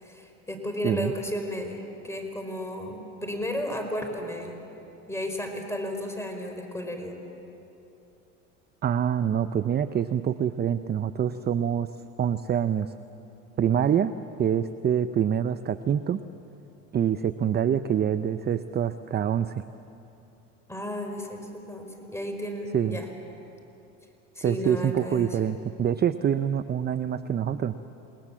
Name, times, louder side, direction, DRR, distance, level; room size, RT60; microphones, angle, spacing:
voice 1, 0.0-4.6 5.1-7.1 20.7-23.1 24.3-25.3, left 1 dB, 5° left, 4 dB, 5.0 m, -33 dB
voice 2, 8.8-11.9 12.2-12.9 13.6-14.1 14.4-16.2 16.9-19.6 22.7-23.0 24.4-27.7, right 9 dB, 25° right, 12 dB, 0.6 m, -25 dB
29.5 x 19.5 x 7.5 m, 2.9 s
hypercardioid pair, 90°, 38 cm